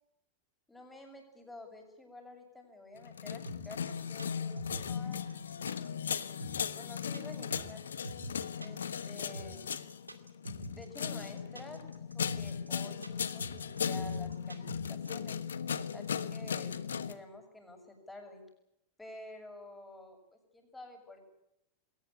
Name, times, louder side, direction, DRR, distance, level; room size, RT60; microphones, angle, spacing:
voice 1, 0.7-3.4 3.7-5.7 6.8-7.8 8.6-9.7 10.7-15.4 15.9-18.4 19.0-21.2, left 2 dB, 10° left, 4 dB, 7.1 m, -50 dB
sound 1, 3.0-17.1, left 7 dB, 70° left, 1.3 m, -37 dB
sound 2, 3.5-15.2, right 2 dB, 85° right, 2.4 m, -45 dB
21.5 x 18.5 x 9.9 m, 0.84 s
figure-of-eight pair, 90°, 0 cm